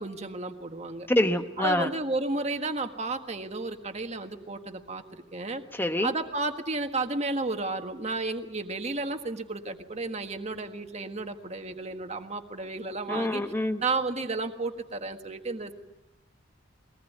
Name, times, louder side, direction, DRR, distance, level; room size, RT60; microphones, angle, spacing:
voice 1, 0.0-1.1 1.6-5.6 6.0-13.4 13.8-15.7, right 3 dB, 35° right, 6 dB, 1.6 m, -32 dB
voice 2, 1.1-1.9 5.7-6.1 13.1-13.8, left 1 dB, 10° left, 7 dB, 1.0 m, -26 dB
22.5 x 19.0 x 9.3 m, 0.98 s
head